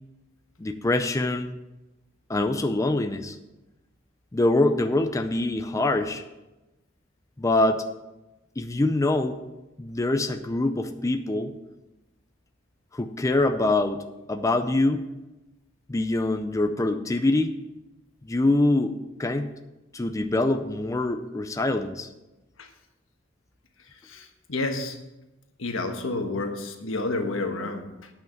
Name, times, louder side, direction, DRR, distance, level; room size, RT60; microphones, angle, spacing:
voice 1, 0.6-1.5 2.3-3.4 4.3-6.2 7.4-7.8 8.6-9.4 9.8-11.5 12.9-14.0 14.3-15.0 15.9-17.5 18.2-19.5 19.9-22.1, left 2 dB, 15° left, 7 dB, 0.4 m, -24 dB
voice 2, 23.8-25.0 25.6-28.1, left 2 dB, 80° left, 5 dB, 1.3 m, -30 dB
9.1 x 5.7 x 7.1 m, 1.0 s
head